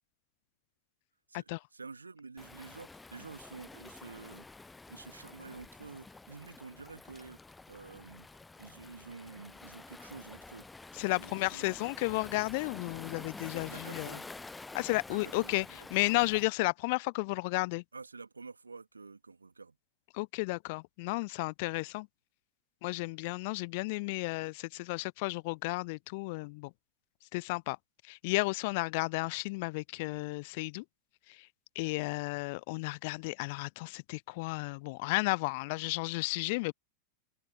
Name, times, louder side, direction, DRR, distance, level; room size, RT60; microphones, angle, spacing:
voice 1, 1.3-4.5 4.9-7.4 7.7-8.3 8.6-10.7 11.2-11.8 13.7-14.3 15.1-15.9 17.9-19.8, right 4 dB, 80° right, 2.4 m, -49 dB
Waves surf, 2.4-16.5, left 3 dB, 10° left, 0.6 m, -49 dB
voice 2, 11.0-14.2 14.7-17.8 20.1-22.1 22.8-26.7 27.3-27.8 28.1-30.8 31.3-31.5 31.8-36.7, left 26 dB, 50° left, 0.5 m, -33 dB
figure-of-eight pair, 90°, 0 cm